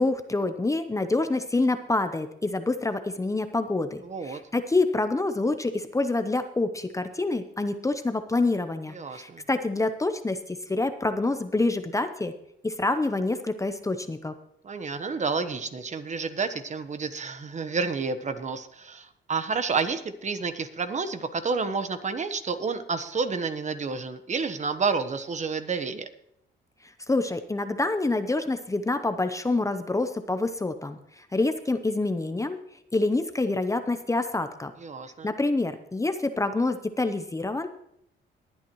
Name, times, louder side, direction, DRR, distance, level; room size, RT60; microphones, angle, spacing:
voice 1, 0.0-12.3 12.6-14.3 27.1-32.6 32.9-34.7 35.2-37.7, left 2 dB, 15° left, 9 dB, 0.7 m, -27 dB
voice 2, 4.0-4.4 8.9-9.4 14.6-26.1 34.8-35.3, right 4 dB, 35° right, 10 dB, 1.1 m, -30 dB
20.0 x 8.9 x 3.1 m, 0.75 s
cardioid pair, 90°, 20 cm